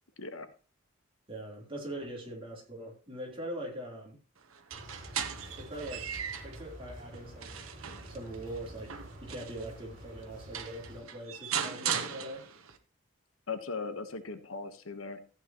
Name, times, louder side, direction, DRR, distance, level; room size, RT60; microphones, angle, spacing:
voice 1, 1.3-4.2 5.6-6.1 6.4-7.6 8.1-9.0 9.2-12.4, right 1 dB, 25° right, -2 dB, 3.6 m, -42 dB
sound 1, 4.6-6.6 7.1-9.7 10.2-10.3 10.5-12.8, right 8 dB, 90° right, 1.1 m, -38 dB
sound 2, 4.7-11.0, equal, 40° right, 5.6 m, -48 dB
voice 2, 13.5-15.3, left 4 dB, 90° left, 9 dB, 1.3 m, -38 dB
14.0 x 8.8 x 3.0 m, 0.36 s
head